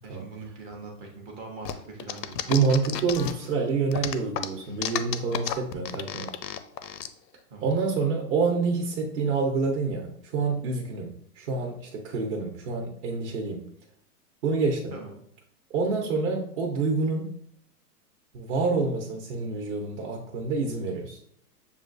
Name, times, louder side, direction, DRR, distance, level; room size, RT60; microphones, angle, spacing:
voice 1, 0.0-2.4 7.5-7.7 14.9-15.2, right 3 dB, 20° right, 0 dB, 0.5 m, -42 dB
sound 1, 1.7-3.5 3.9-7.1, left 11 dB, 80° left, 0.6 m, -32 dB
voice 2, 2.5-6.3 7.6-13.6 14.4-14.9 15.7-17.3 18.3-21.2, right 4 dB, 45° right, 1 dB, 0.8 m, -27 dB
6.9 x 2.3 x 2.5 m, 0.69 s
hypercardioid pair, 145°, 49 cm